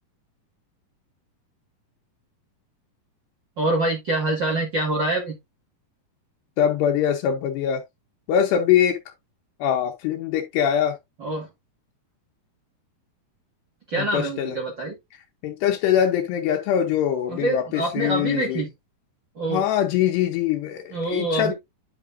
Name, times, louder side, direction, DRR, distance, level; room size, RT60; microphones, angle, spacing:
voice 1, 3.6-5.3 11.2-11.5 13.9-15.0 17.3-18.7 19.3-19.6 20.9-21.5, right 2 dB, 50° right, 1.4 m, -25 dB
voice 2, 6.6-7.8 8.3-9.0 9.6-11.0 13.9-14.6 15.4-18.6 19.5-21.5, left 9 dB, 80° left, 3.0 m, -23 dB
10.0 x 5.8 x 2.5 m
omnidirectional pair, 4.8 m